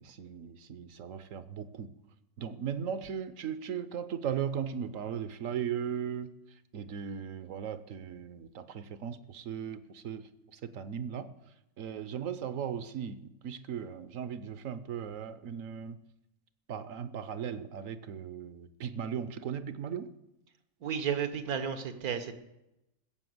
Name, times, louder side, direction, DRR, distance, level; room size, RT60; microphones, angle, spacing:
voice 1, 0.0-1.9 2.4-6.3 6.7-11.3 11.8-16.0 16.7-20.1, right 8 dB, 65° right, 13 dB, 1.1 m, -37 dB
voice 2, 20.8-22.3, right 7 dB, 80° right, 9 dB, 1.6 m, -32 dB
15.0 x 7.6 x 7.8 m, 0.92 s
omnidirectional pair, 1.5 m